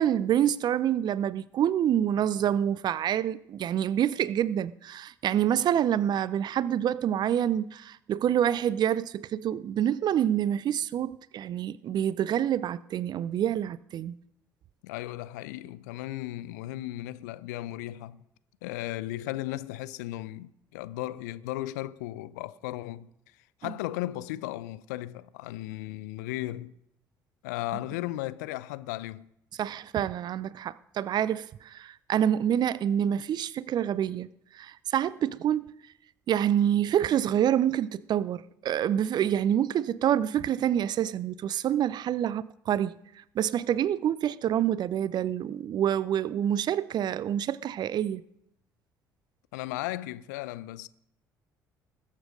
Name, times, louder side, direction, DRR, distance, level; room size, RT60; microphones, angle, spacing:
voice 1, 0.0-14.2 23.6-23.7 29.6-34.3 34.5-35.7 36.3-48.2, right 10 dB, 45° right, 0.6 m, -27 dB
voice 2, 14.8-18.2 18.6-23.1 23.6-26.8 27.4-29.3 49.5-50.9, left 16 dB, 70° left, 0.6 m, -36 dB
20.5 x 7.5 x 5.1 m
figure-of-eight pair, 55°, 10 cm